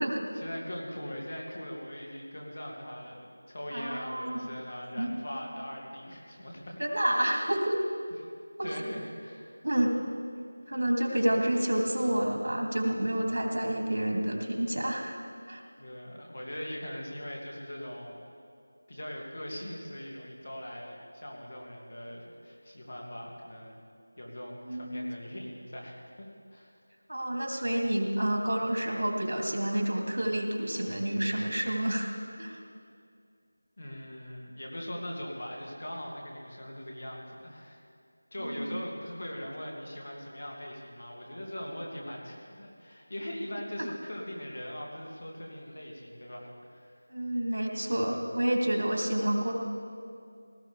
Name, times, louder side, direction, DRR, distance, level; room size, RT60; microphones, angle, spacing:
voice 1, 0.3-6.8 7.1-7.3 8.2-8.3 8.6-9.5 9.9-10.0 15.8-18.2 18.9-23.8 24.2-26.7 33.8-37.8 38.3-46.9, equal, 45° left, -1 dB, 2.4 m, -41 dB
voice 2, 3.7-4.4 5.0-5.1 6.8-7.8 8.6-8.8 9.6-9.9 10.7-15.2 15.5-15.6 24.6-25.1 27.1-32.1 32.4-32.6 38.4-38.9 43.8-43.9 47.1-49.5, right 1 dB, 80° right, 1 dB, 2.7 m, -29 dB
18.0 x 16.0 x 3.4 m, 2.3 s
figure-of-eight pair, 180°, 0 cm